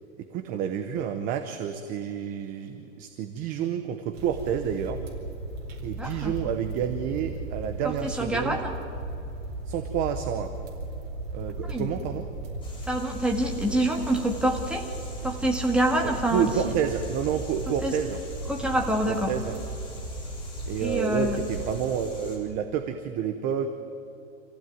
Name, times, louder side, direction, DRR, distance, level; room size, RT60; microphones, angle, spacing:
voice 1, 0.2-5.0 5.8-8.6 9.7-10.5 11.3-12.3 16.0-18.2 19.1-19.6 20.7-23.7, right 8 dB, 20° right, 8 dB, 0.8 m, -29 dB
sound 1, 4.1-22.5, right 2 dB, 50° right, 4.5 m, -36 dB
voice 2, 6.0-6.3 8.0-8.7 11.7-11.9 12.9-14.9 15.2-16.5 17.8-17.9 18.5-19.3 20.8-21.4, right 1 dB, 5° right, 1 dB, 1.8 m, -26 dB
sound 2, 12.6-22.4, left 2 dB, 15° left, 4.6 m, -47 dB
27.0 x 15.5 x 9.2 m, 2.9 s
supercardioid pair, 165°, 38 cm